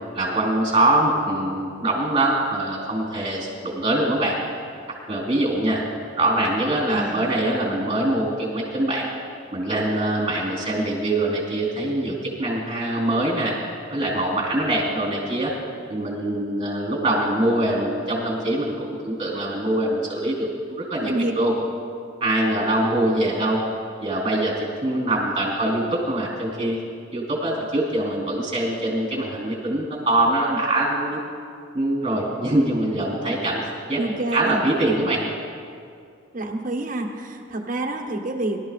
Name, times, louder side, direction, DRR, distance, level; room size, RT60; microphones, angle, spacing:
voice 1, 0.1-4.4 5.1-5.8 6.2-9.1 9.5-13.5 13.9-15.5 15.9-21.5 22.2-23.6 24.0-24.5 24.8-26.8 27.1-31.2 31.7-33.6 33.9-34.0 34.3-35.3, right 1 dB, 25° right, -2 dB, 4.0 m, -23 dB
voice 2, 6.9-7.3 21.0-21.3 34.0-34.6 36.3-38.6, right 2 dB, 40° right, 0 dB, 1.3 m, -27 dB
24.0 x 12.5 x 2.5 m, 2.4 s
head